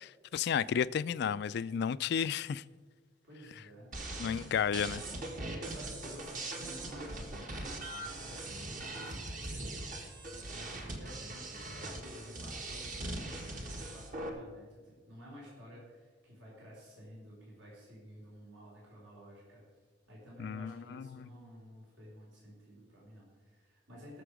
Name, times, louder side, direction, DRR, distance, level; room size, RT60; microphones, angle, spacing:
voice 1, 0.0-2.6 4.2-5.0 20.4-21.3, left 7 dB, 60° left, 18 dB, 0.3 m, -33 dB
voice 2, 3.3-4.5 5.5-10.0 10.5-19.6 20.1-24.2, equal, 70° right, -5 dB, 4.4 m, -52 dB
sound 1, 3.9-14.3, right 2 dB, 45° right, 1.6 m, -41 dB
19.0 x 6.9 x 5.0 m, 1.5 s
head